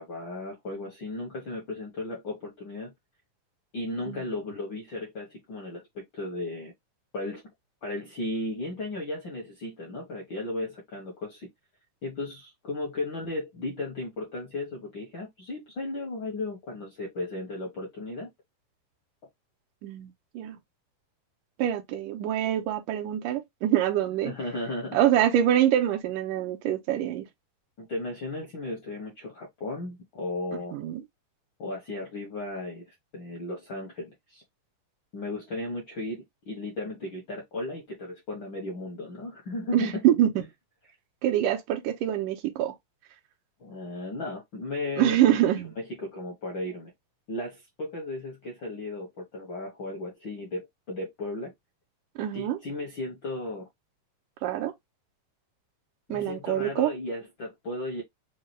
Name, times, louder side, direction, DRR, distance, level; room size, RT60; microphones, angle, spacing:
voice 1, 0.0-2.9 3.7-6.7 7.1-7.4 7.8-11.5 12.0-18.3 24.2-25.0 27.8-30.8 31.6-32.9 33.1-34.4 35.1-40.1 43.6-45.4 45.8-46.9 47.3-51.5 52.3-53.7 56.1-58.0, left 2 dB, 65° left, 1.2 m, -35 dB
voice 2, 19.8-20.6 21.6-24.3 24.9-27.3 30.7-31.0 39.7-40.4 41.2-42.7 45.0-45.7 52.2-52.6 54.4-54.7 56.1-56.9, right 11 dB, 80° right, 2.3 m, -25 dB
5.6 x 2.3 x 3.1 m
omnidirectional pair, 3.8 m